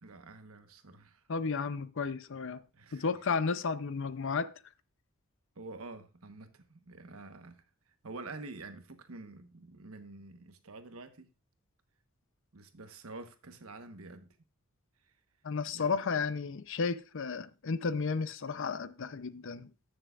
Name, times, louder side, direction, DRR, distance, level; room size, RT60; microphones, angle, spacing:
voice 1, 0.0-1.2 2.7-3.2 5.5-7.6 8.0-11.3 12.5-14.3 15.7-16.1, right 3 dB, 85° right, 1.2 m, -48 dB
voice 2, 1.3-2.6 2.9-4.5 15.4-19.7, left 5 dB, 65° left, 0.6 m, -33 dB
14.0 x 6.8 x 2.5 m
head